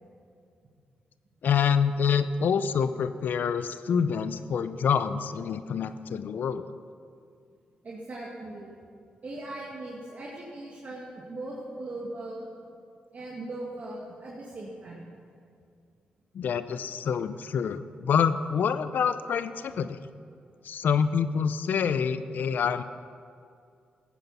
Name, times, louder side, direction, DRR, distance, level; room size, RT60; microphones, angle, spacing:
voice 1, 1.4-6.7 16.3-20.0 20.6-22.8, left 7 dB, 70° left, 12 dB, 0.6 m, -27 dB
voice 2, 7.8-8.7 9.2-12.5 13.1-15.1, right 2 dB, 50° right, -4 dB, 2.0 m, -39 dB
15.5 x 9.2 x 5.7 m, 2.3 s
cardioid pair, 65°, 3 cm